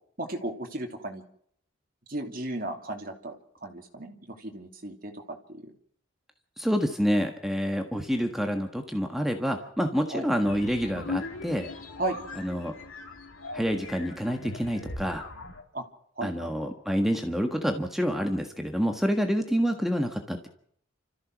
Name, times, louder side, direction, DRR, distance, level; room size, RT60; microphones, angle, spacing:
voice 1, 0.2-1.2 2.1-5.7 10.1-10.3 12.0-12.2 15.7-15.9 16.2-16.5, right 2 dB, 45° right, 2 dB, 2.9 m, -35 dB
voice 2, 6.6-11.7 12.4-12.7 13.5-15.2 16.2-20.5, equal, ahead, 4 dB, 1.5 m, -28 dB
sound 1, 10.4-15.6, left 3 dB, 90° left, 3.1 m, -39 dB
29.5 x 14.5 x 6.3 m, 0.65 s
head